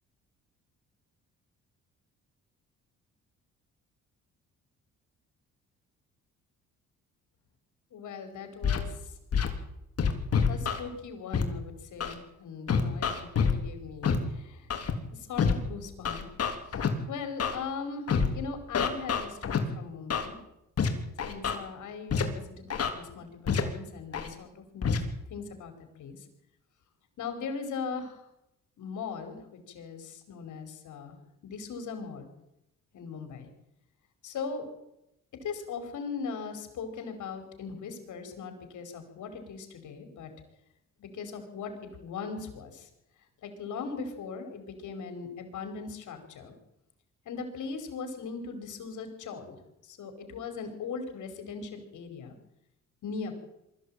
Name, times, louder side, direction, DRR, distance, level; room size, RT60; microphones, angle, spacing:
voice 1, 7.9-9.2 10.5-14.7 15.1-16.2 16.7-20.4 21.2-25.7 26.0-26.3 27.2-28.2 28.8-31.2 31.4-32.3 32.9-33.5 34.2-34.7 35.4-40.3 41.0-41.7 42.0-42.9 43.4-46.5 47.3-49.6 49.8-52.3 53.0-53.4, left 5 dB, 75° left, 6 dB, 5.3 m, -39 dB
Scratching (performance technique), 8.6-8.8 9.3-9.5 10.0-10.8 11.3-11.4 12.0-12.1 12.7-13.5 14.0-14.2 14.7-14.9 15.4-15.5 16.0-16.9 17.4-17.5 18.1-18.3 18.7-19.6 20.1-20.3 20.8-20.9 21.2-21.6 22.1-22.2 22.7-22.9 23.5-23.6 24.1-24.3 24.8-25.0, left 6 dB, 50° left, 3.4 m, -26 dB
23.5 x 14.5 x 9.1 m, 0.85 s
cardioid pair, 90°, 30 cm